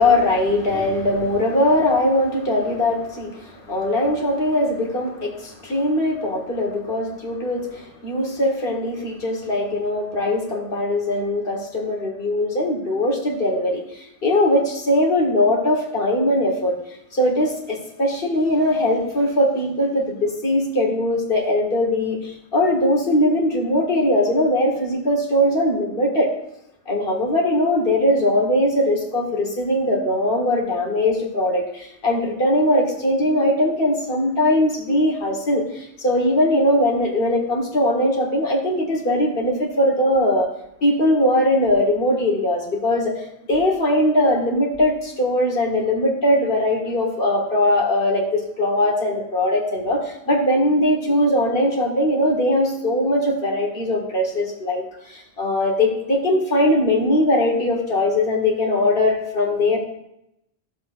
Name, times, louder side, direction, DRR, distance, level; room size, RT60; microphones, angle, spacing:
voice 1, 0.0-16.8 17.1-26.3 26.9-40.5 40.8-43.2 43.5-59.8, left 1 dB, 55° left, -1 dB, 1.8 m, -20 dB
13.5 x 7.2 x 2.6 m, 0.81 s
omnidirectional pair, 1.1 m